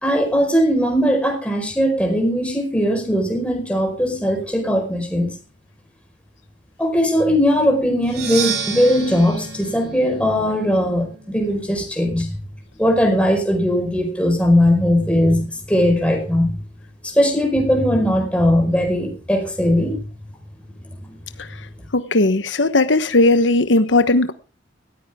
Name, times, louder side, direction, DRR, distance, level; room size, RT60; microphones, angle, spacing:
voice 1, 0.0-5.3 6.8-12.4 12.8-16.5 17.0-20.0, equal, 5° left, 2 dB, 4.9 m, -19 dB
Percussion, 8.0-11.8, right 6 dB, 60° right, 4.3 m, -31 dB
voice 2, 21.9-24.3, left 2 dB, 85° left, 11 dB, 1.1 m, -16 dB
18.0 x 14.5 x 3.6 m, 0.34 s
head